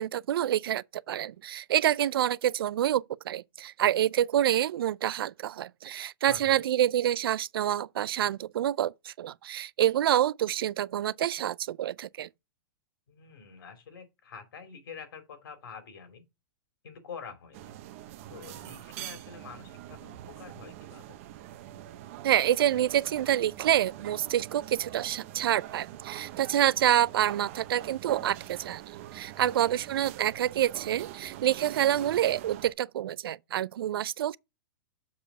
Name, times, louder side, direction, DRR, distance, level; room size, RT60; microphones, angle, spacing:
voice 1, 0.0-12.3 22.2-28.8 29.1-34.4, right 11 dB, 80° right, 0.4 m, -27 dB
voice 2, 6.3-6.6 13.1-16.2 16.8-17.7 18.3-21.2 29.4-29.8, left 6 dB, 80° left, 2.7 m, -46 dB
sound 1, 17.5-32.7, right 13 dB, 35° right, 0.6 m, -43 dB
7.0 x 4.7 x 5.9 m
supercardioid pair, 170°, 12 cm